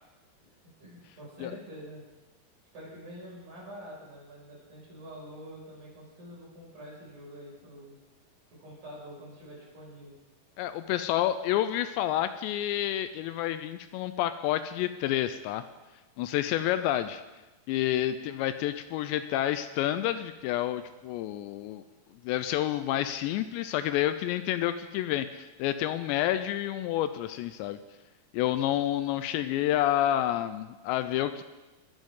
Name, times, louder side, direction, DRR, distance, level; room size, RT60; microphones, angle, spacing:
voice 1, 0.8-2.0 2.7-8.0 8.6-10.2, equal, 40° right, -6 dB, 6.9 m, -46 dB
voice 2, 10.6-15.6 16.2-17.2 17.7-21.8 22.2-27.8 28.3-31.4, left 12 dB, 85° left, 11 dB, 2.7 m, -29 dB
21.0 x 10.5 x 3.7 m, 1.1 s
omnidirectional pair, 5.2 m